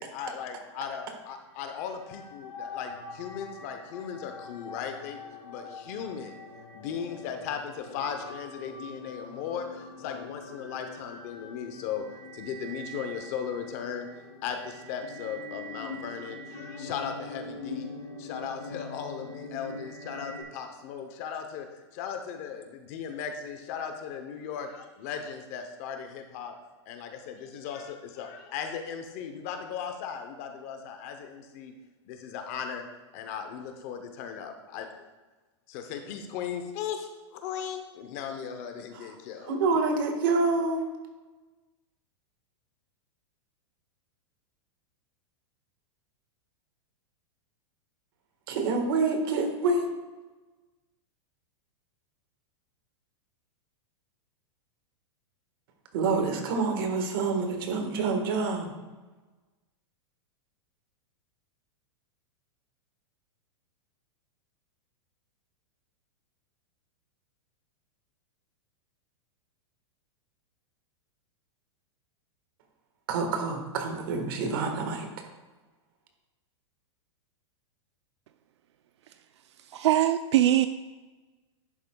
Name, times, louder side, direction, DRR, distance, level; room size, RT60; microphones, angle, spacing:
voice 1, 0.0-6.4 6.7-12.1 12.3-14.1 14.4-17.9 18.2-26.5 26.9-31.7 32.1-32.9 33.1-34.9 35.7-39.6, left 7 dB, 30° left, 0.7 m, -37 dB
sound 1, 1.5-20.4, left 2 dB, 75° left, 2.7 m, -43 dB
voice 2, 39.5-40.8 48.5-49.9 55.9-58.7 73.1-75.1, right 4 dB, 50° right, 1.4 m, -27 dB
voice 3, 79.7-80.7, right 13 dB, 65° right, 0.4 m, -22 dB
11.0 x 8.2 x 2.2 m
supercardioid pair, 175°, 15 cm